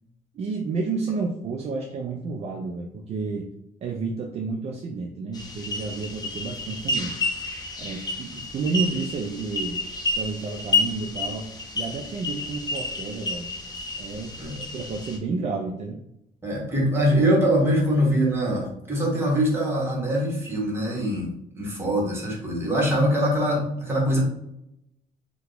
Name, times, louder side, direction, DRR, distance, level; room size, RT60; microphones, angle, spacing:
voice 1, 0.3-3.5 3.8-7.2 7.8-9.8 10.2-11.5 11.7-13.5 14.0-16.0, right 4 dB, 40° right, 2 dB, 0.4 m, -31 dB
sound 1, 5.3-15.2, left 2 dB, 25° left, 0.6 m, -30 dB
voice 2, 16.4-24.2, equal, 15° right, -3 dB, 1.2 m, -23 dB
2.8 x 2.3 x 3.8 m, 0.80 s
cardioid pair, 110°, 17 cm